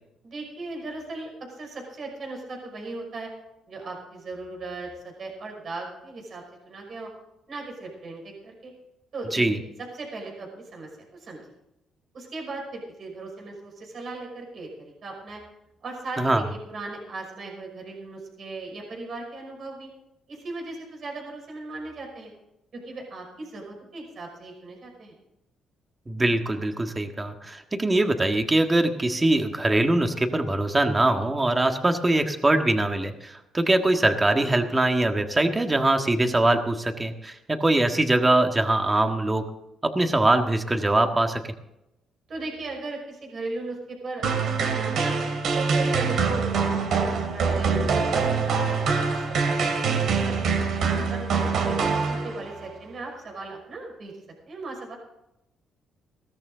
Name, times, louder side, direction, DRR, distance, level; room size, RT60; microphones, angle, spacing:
voice 1, 0.2-3.3 3.7-7.1 7.5-8.7 9.1-9.4 9.9-11.4 12.1-15.4 15.8-19.9 20.3-22.3 22.7-25.2 42.3-45.2 45.5-50.4 50.9-54.1 54.5-55.0, right 2 dB, 55° right, 1 dB, 5.6 m, -37 dB
voice 2, 26.1-39.5 39.8-41.5, right 2 dB, 20° right, 6 dB, 1.6 m, -22 dB
sound 1, 44.2-52.6, right 5 dB, 70° right, 2.6 m, -24 dB
17.0 x 13.5 x 3.9 m, 0.89 s
cardioid pair, 90°, 0 cm